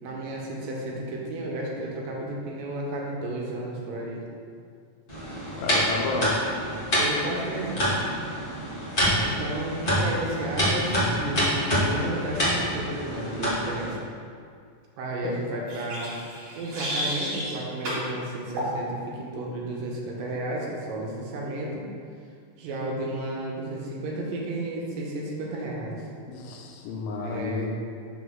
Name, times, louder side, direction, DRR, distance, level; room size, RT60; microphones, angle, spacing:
voice 1, 0.0-4.2 6.9-8.0 9.2-14.0 15.0-16.2 16.6-21.9 22.6-26.0 27.2-27.9, right 1 dB, 75° right, -3 dB, 2.5 m, -32 dB
sound 1, 5.1-13.9, equal, 55° left, 0.5 m, -27 dB
voice 2, 5.6-6.4 15.2-15.3 26.3-27.7, left 3 dB, 90° left, 1 dB, 2.5 m, -31 dB
sound 2, 15.7-17.5 17.8-18.1 18.6-18.8, equal, 55° right, 3.1 m, -32 dB
6.0 x 3.9 x 6.2 m, 2.2 s
omnidirectional pair, 4.2 m